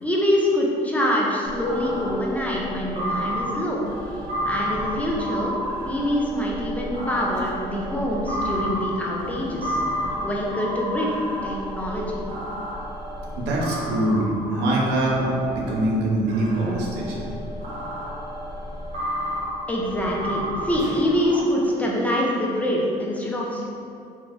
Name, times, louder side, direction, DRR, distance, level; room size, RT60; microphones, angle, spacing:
voice 1, 0.0-3.8 4.4-5.5 5.8-9.8 10.2-12.2 19.7-23.7, equal, 10° left, -4 dB, 0.5 m, -25 dB
sound 1, 1.4-15.8 16.3-21.4, equal, 60° right, 1.1 m, -31 dB
voice 2, 13.4-17.3, right 1 dB, 85° right, -2 dB, 0.7 m, -23 dB
3.7 x 2.9 x 2.5 m, 2.5 s
cardioid pair, 110°, 17 cm